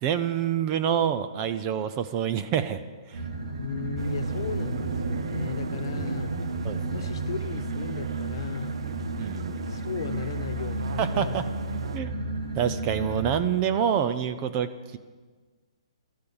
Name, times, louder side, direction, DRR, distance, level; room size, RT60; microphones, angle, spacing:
voice 1, 0.0-2.8 3.1-3.2 6.6-6.8 9.2-9.6 11.0-11.4 11.9-12.1 12.6-15.0, right 9 dB, 25° right, 12 dB, 0.6 m, -27 dB
sound 1, 3.1-13.4, right 2 dB, 85° right, 2.8 m, -32 dB
voice 2, 3.6-6.3 6.9-8.8 9.7-11.6, left 6 dB, 50° left, 11 dB, 1.1 m, -36 dB
sound 2, 4.0-12.0, right 7 dB, 65° right, 0.6 m, -39 dB
13.0 x 12.5 x 7.2 m, 1.4 s
hypercardioid pair, 165°, 3 cm